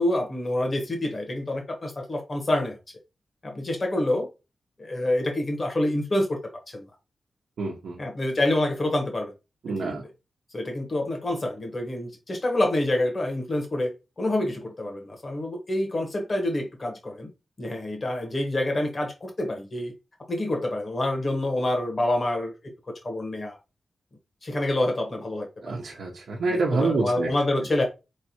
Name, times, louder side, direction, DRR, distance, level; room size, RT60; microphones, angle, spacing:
voice 1, 0.0-2.8 3.4-4.3 4.8-6.4 6.7-6.8 8.0-9.3 9.7-9.9 10.5-13.9 14.2-17.3 17.6-19.9 20.3-22.5 22.9-23.6 24.4-25.5 26.5-27.8, left 1 dB, 30° left, 1.2 m, -27 dB
voice 2, 7.6-8.0 9.6-10.0 25.6-27.3, right 3 dB, 90° right, 0.8 m, -27 dB
4.5 x 3.3 x 2.8 m
wide cardioid pair, 165°, 0 cm